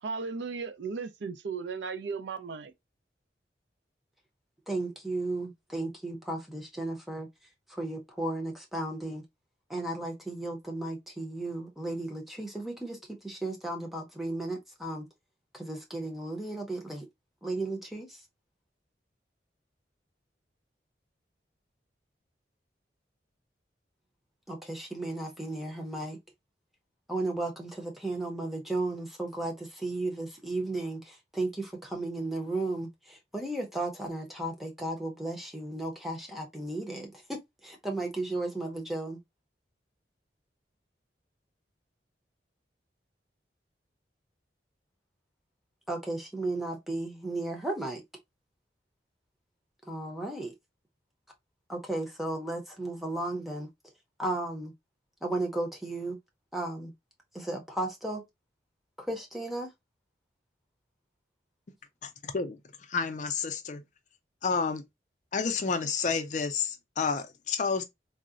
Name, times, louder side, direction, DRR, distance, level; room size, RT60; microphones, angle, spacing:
voice 1, 0.0-2.7, right 5 dB, 80° right, 0.4 m, -36 dB
voice 2, 4.7-7.3 7.7-9.2 9.7-15.1 15.5-17.1 17.4-18.2 24.5-26.2 27.1-39.2 45.9-48.0 49.9-50.5 51.7-53.7 54.2-54.7 55.2-56.2 56.5-56.9 57.3-58.2 59.0-59.7, right 2 dB, ahead, 0.7 m, -34 dB
voice 3, 62.0-62.6 62.9-63.8 64.4-64.8 65.3-67.8, left 5 dB, 45° left, 0.4 m, -30 dB
3.7 x 2.1 x 2.4 m
head